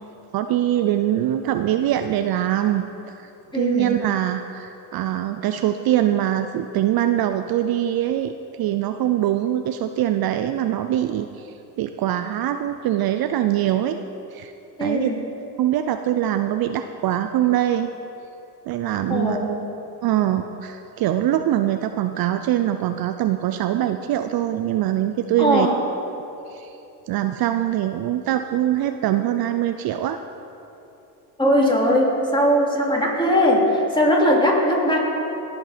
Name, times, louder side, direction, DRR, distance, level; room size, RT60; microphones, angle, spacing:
voice 1, 0.3-2.9 3.2-3.3 3.5-14.0 14.3-14.5 14.8-15.1 15.6-17.9 18.7-19.4 20.0-25.7 26.5-26.7 27.1-30.2, right 12 dB, 55° right, 8 dB, 0.6 m, -23 dB
voice 2, 3.5-4.0 14.8-15.2 19.1-19.5 25.4-25.7 31.4-35.0, equal, 10° left, -3 dB, 3.0 m, -19 dB
18.0 x 6.1 x 5.2 m, 2.8 s
supercardioid pair, 75°, 44 cm